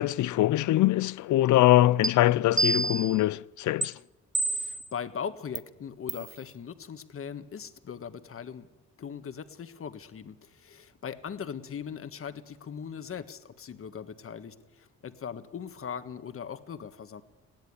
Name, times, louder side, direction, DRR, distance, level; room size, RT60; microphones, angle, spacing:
voice 1, 0.0-4.0, left 15 dB, 75° left, 0.6 m, -23 dB
sound 1, 2.0-2.1 2.6-3.2 3.8-3.9 4.4-4.9 5.6-5.7 6.1-6.3, right 3 dB, 25° right, 0.7 m, -28 dB
voice 2, 4.4-8.7 9.0-17.2, left 7 dB, 45° left, 1.6 m, -40 dB
20.0 x 16.5 x 9.7 m
cardioid pair, 90°, 30 cm